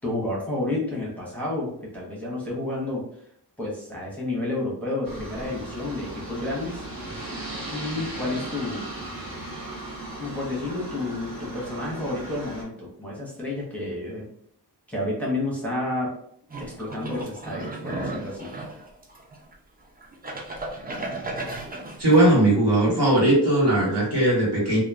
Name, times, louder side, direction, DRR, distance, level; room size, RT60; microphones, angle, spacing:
voice 1, 0.0-3.0 3.6-6.8 7.7-8.8 10.2-14.2 14.9-16.1 16.6-18.5, left 2 dB, 5° left, -6 dB, 1.0 m, -30 dB
Aircraft, 5.0-12.6, right 2 dB, 55° right, 1.1 m, -36 dB
sound 1, 16.5-19.5 20.0-22.3, right 2 dB, 25° right, 0.4 m, -34 dB
voice 2, 22.0-24.8, right 1 dB, 70° right, -6 dB, 1.4 m, -19 dB
3.0 x 2.3 x 2.3 m, 0.66 s
wide cardioid pair, 85°, 42 cm